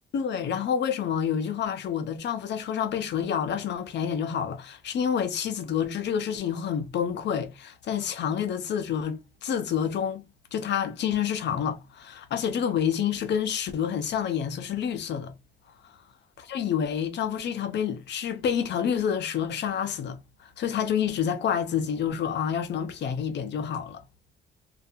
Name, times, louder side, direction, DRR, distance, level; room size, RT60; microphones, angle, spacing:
voice 1, 0.1-10.2 10.5-15.3 16.5-24.0, left 8 dB, 60° left, 0.6 m, -28 dB
2.5 x 2.2 x 2.6 m
cardioid pair, 90°, 20 cm